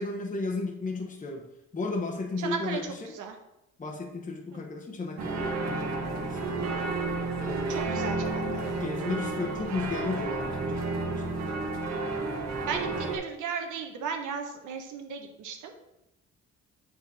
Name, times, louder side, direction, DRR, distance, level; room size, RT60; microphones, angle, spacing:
voice 1, 0.0-1.5 1.7-3.2 3.8-6.8 7.4-7.8 8.7-11.2, left 3 dB, 25° left, 0 dB, 1.0 m, -34 dB
voice 2, 2.4-2.8 3.1-3.4 4.5-4.6 7.7-8.8 12.7-15.7, right 6 dB, 85° right, 4 dB, 1.2 m, -35 dB
sound 1, 5.2-13.2, right 3 dB, 60° right, 1.6 m, -31 dB
8.4 x 3.9 x 4.2 m, 0.87 s
cardioid pair, 90°, 30 cm